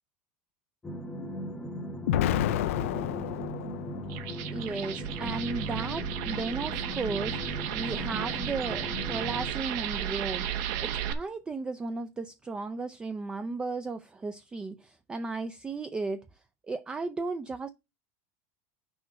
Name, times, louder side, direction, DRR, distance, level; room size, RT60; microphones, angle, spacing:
sound 1, 0.8-9.5, equal, 10° left, 0.9 m, -37 dB
Explosion, 2.1-4.2, left 13 dB, 90° left, 0.4 m, -29 dB
sound 2, 4.0-11.1, right 10 dB, 60° right, 1.1 m, -34 dB
voice 1, 4.5-16.3 16.7-17.7, right 3 dB, 10° right, 0.4 m, -35 dB
6.1 x 4.5 x 6.3 m
supercardioid pair, 150°, 7 cm